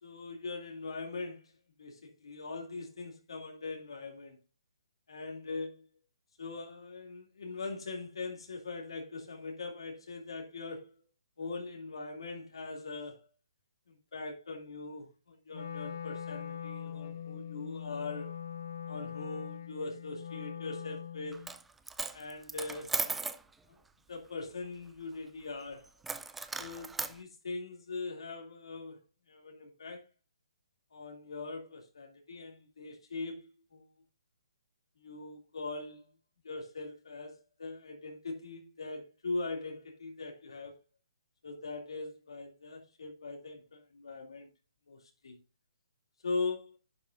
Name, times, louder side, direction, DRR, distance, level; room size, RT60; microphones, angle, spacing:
voice 1, 0.0-1.5 1.8-4.4 5.1-5.9 6.4-10.9 11.4-13.3 13.9-18.3 18.9-21.4 22.1-22.9 23.7-23.8 24.1-25.9 26.6-29.0 29.3-30.1 30.9-33.9 35.0-36.1 36.4-40.8 41.4-44.5 44.9-45.4 46.2-46.8, left 3 dB, 75° left, 2.6 m, -41 dB
Wind instrument woodwind instrument, 15.5-21.5, left 8 dB, 45° left, 1.5 m, -42 dB
Coin (dropping), 21.3-21.6 21.9-23.4 26.0-27.1, right 4 dB, 5° right, 0.4 m, -36 dB
11.0 x 9.0 x 2.6 m
hypercardioid pair, 175°, 3 cm